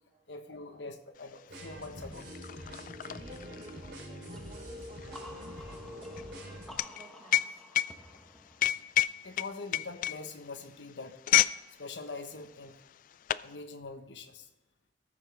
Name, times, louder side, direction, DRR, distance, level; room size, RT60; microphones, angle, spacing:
voice 1, 0.3-2.3 9.2-11.2 11.8-12.8 13.4-14.5, left 3 dB, 90° left, 6 dB, 1.2 m, -43 dB
sound 1, 1.3-1.4 1.7-11.6 11.9-12.2 12.9-13.5, left 13 dB, 50° left, 0.3 m, -30 dB
sound 2, 1.5-6.8, equal, 65° right, 3.3 m, -45 dB
voice 2, 3.1-6.2 6.9-7.6 9.1-9.2, right 1 dB, 35° right, 4 dB, 1.5 m, -55 dB
sound 3, 4.3-9.9, left 1 dB, ahead, 0.9 m, -52 dB
18.0 x 7.2 x 3.4 m, 1.0 s
head